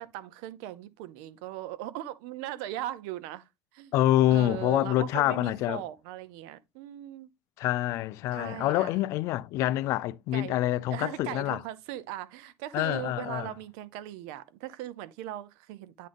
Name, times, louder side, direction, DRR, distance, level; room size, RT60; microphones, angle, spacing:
voice 1, 0.0-3.9 4.3-7.3 8.3-8.9 10.3-10.6 10.9-16.1, right 13 dB, 90° right, 0.7 m, -39 dB
voice 2, 3.9-5.8 7.6-11.6 12.7-13.5, left 14 dB, 65° left, 0.4 m, -26 dB
9.3 x 3.9 x 3.5 m
cardioid pair, 120°, 5 cm